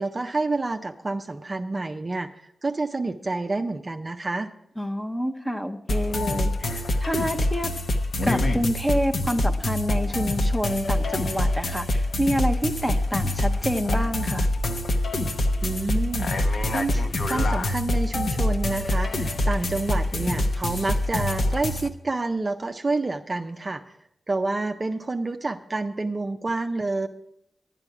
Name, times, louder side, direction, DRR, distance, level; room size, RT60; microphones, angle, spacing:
voice 1, 0.0-2.3 2.6-4.5 15.6-17.0 17.3-23.8 24.3-27.1, right 3 dB, 30° right, 5 dB, 0.5 m, -28 dB
voice 2, 4.8-7.7 8.2-14.5, equal, 5° left, 6 dB, 0.7 m, -28 dB
sound 1, 5.9-21.9, left 1 dB, 60° left, 0.8 m, -25 dB
10.5 x 10.5 x 4.7 m, 0.77 s
wide cardioid pair, 120°, 0 cm